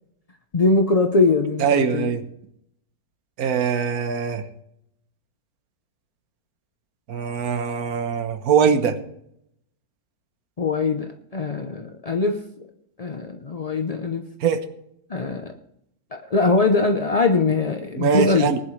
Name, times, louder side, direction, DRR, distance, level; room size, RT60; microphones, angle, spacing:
voice 1, 0.5-2.1 10.6-12.4 13.0-14.2 15.1-15.5 16.1-18.5, left 3 dB, 50° left, 4 dB, 0.4 m, -22 dB
voice 2, 1.6-2.2 3.4-4.4 7.1-9.0 14.4-14.6 18.0-18.6, right 6 dB, 60° right, 8 dB, 1.4 m, -22 dB
19.5 x 11.0 x 3.2 m, 0.75 s
omnidirectional pair, 1.9 m